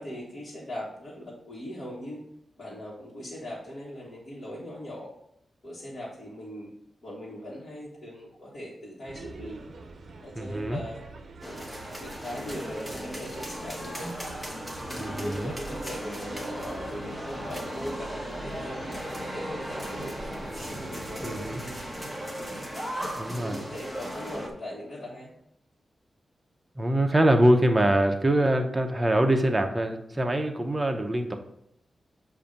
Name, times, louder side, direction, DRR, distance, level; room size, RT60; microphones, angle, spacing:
voice 1, 0.0-2.2 2.6-5.1 5.6-6.7 7.0-9.6 10.2-11.0 11.4-11.7 12.0-14.1 14.9-20.1 20.6-21.8 22.4-22.6 23.4-25.3 28.3-28.5, equal, 45° left, -7 dB, 1.4 m, -40 dB
sound 1, 9.1-21.9, right 3 dB, 60° right, 0.6 m, -46 dB
voice 2, 10.4-10.8 15.0-15.5 21.2-21.6 23.2-23.6 26.8-31.4, right 1 dB, 15° right, 4 dB, 0.7 m, -24 dB
sound 2, 11.4-24.5, equal, 5° left, 0.9 m, -37 dB
7.0 x 2.6 x 5.1 m, 0.75 s
wide cardioid pair, 110°, 0 cm